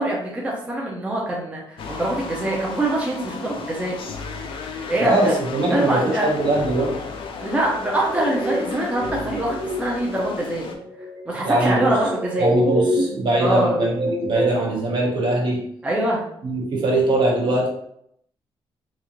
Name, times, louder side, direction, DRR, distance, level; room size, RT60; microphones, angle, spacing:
voice 1, 0.0-4.0 4.9-5.3 5.7-6.3 7.4-10.7 11.3-12.5 13.4-13.8 15.8-16.2, right 1 dB, 15° right, -3 dB, 0.6 m, -24 dB
sound 1, 1.8-10.8, left 4 dB, 65° left, 0.5 m, -34 dB
voice 2, 5.0-7.0 11.4-12.0 12.4-15.6 16.4-17.7, right 2 dB, 50° right, -2 dB, 1.1 m, -21 dB
sound 2, 7.6-15.0, equal, 80° right, 1.0 m, -27 dB
4.1 x 2.5 x 2.9 m, 0.71 s
cardioid pair, 150°, 10 cm